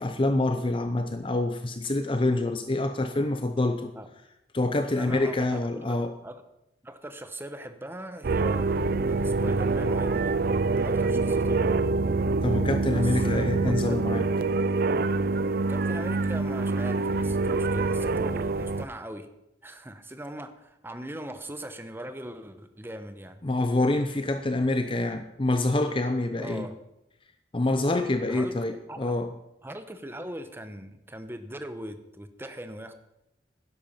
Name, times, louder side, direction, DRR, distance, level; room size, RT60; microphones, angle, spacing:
voice 1, 0.0-3.9 4.5-6.1 12.4-14.2 23.4-26.7 27.5-29.3, left 2 dB, 30° left, 8 dB, 0.7 m, -26 dB
voice 2, 5.0-5.9 6.2-6.4 6.8-10.4 10.7-11.9 12.9-14.0 15.7-19.3 19.6-23.4 26.4-26.8 28.3-28.6 28.9-29.2 29.6-32.9, right 1 dB, 10° right, 9 dB, 1.0 m, -40 dB
sound 1, 8.2-18.8, right 3 dB, 55° right, 0.4 m, -25 dB
12.0 x 10.5 x 5.7 m, 0.87 s
head